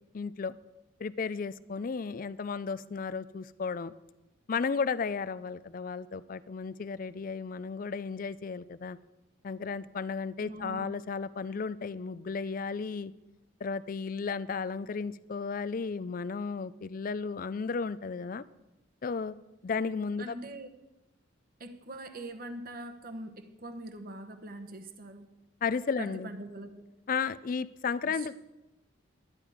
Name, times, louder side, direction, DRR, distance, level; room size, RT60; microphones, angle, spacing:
voice 1, 0.1-0.5 1.0-3.9 4.5-9.0 9.4-13.1 13.6-18.4 19.0-19.3 19.6-20.4 25.6-26.3 27.1-28.3, left 5 dB, 40° left, 16 dB, 0.4 m, -34 dB
voice 2, 10.4-10.9 19.7-20.7 21.6-25.3 26.0-26.7 28.0-28.3, right 2 dB, 45° right, 8 dB, 1.0 m, -43 dB
11.5 x 10.5 x 4.9 m, 1.0 s
head